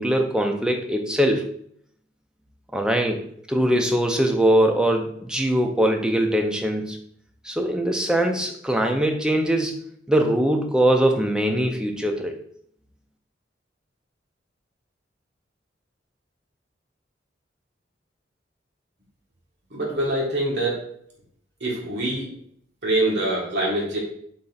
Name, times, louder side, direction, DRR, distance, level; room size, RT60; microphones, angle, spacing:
voice 1, 0.0-1.5 2.7-3.2 3.5-7.0 7.4-9.8 10.1-12.4, right 1 dB, 5° right, 3 dB, 0.5 m, -22 dB
voice 2, 19.7-20.9 21.6-22.3 22.8-24.0, right 1 dB, 65° right, -5 dB, 1.5 m, -24 dB
4.0 x 3.2 x 3.9 m, 0.66 s
head